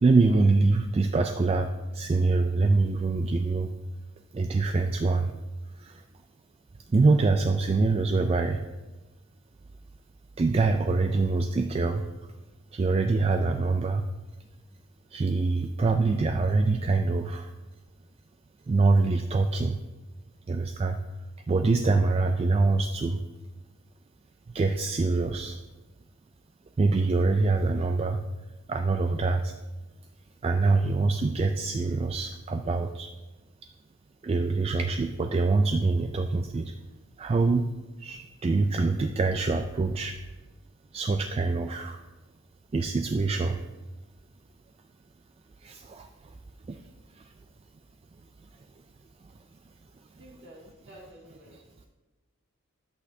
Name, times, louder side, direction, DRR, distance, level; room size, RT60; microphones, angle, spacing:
voice 1, 0.0-3.7 4.3-5.3 5.8-6.0 6.9-8.6 10.4-12.0 12.7-14.0 15.1-17.5 18.7-19.8 20.5-21.0 21.5-23.2 24.5-25.6 26.8-28.2 28.7-29.5 30.4-33.1 34.2-36.7 37.2-37.7 38.0-40.2 40.9-42.0 42.7-43.6 45.6-46.1 46.7-46.8 47.2-47.3, right 3 dB, 30° right, 6 dB, 0.3 m, -24 dB
voice 2, 50.2-51.7, equal, 55° right, -2 dB, 2.1 m, -50 dB
10.5 x 8.1 x 2.7 m, 1.2 s
head